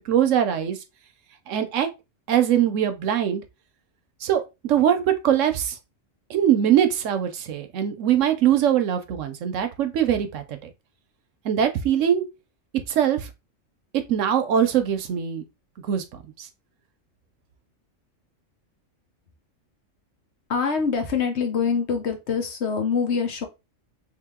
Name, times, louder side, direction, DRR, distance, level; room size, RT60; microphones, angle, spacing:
voice 1, 0.1-0.8 1.5-1.9 2.3-3.4 4.2-5.8 6.3-10.7 11.4-12.2 12.9-13.3 14.1-15.4 15.9-16.5, right 9 dB, 75° right, 1.0 m, -22 dB
voice 2, 20.5-23.5, left 5 dB, 60° left, 1.1 m, -24 dB
3.3 x 2.9 x 3.5 m
omnidirectional pair, 1.3 m